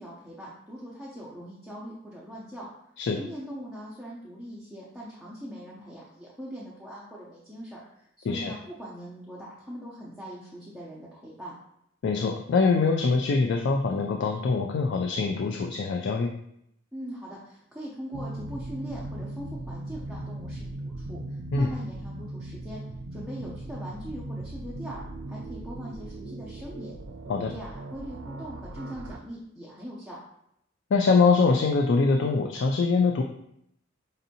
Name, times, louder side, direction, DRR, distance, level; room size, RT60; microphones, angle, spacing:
voice 1, 0.0-2.7 3.1-11.5 16.9-22.8 23.1-26.9 27.4-30.2, equal, ahead, -8 dB, 0.6 m, -41 dB
voice 2, 12.0-16.3 21.5-21.7 27.3-27.5 30.9-33.2, left 4 dB, 60° left, 3 dB, 0.3 m, -23 dB
sound 1, 18.1-29.2, right 2 dB, 75° right, 0.4 m, -38 dB
5.1 x 2.7 x 2.7 m, 0.75 s
head